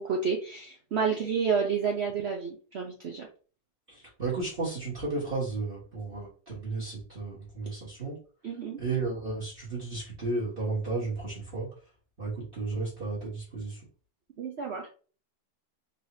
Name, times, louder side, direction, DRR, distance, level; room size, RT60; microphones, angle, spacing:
voice 1, 0.0-3.3 8.4-8.8 14.4-14.9, right 6 dB, 75° right, 0 dB, 0.6 m, -30 dB
voice 2, 3.9-8.2 8.8-11.7 12.2-13.8, right 3 dB, 30° right, -6 dB, 1.5 m, -33 dB
4.2 x 3.2 x 2.7 m, 0.39 s
omnidirectional pair, 1.9 m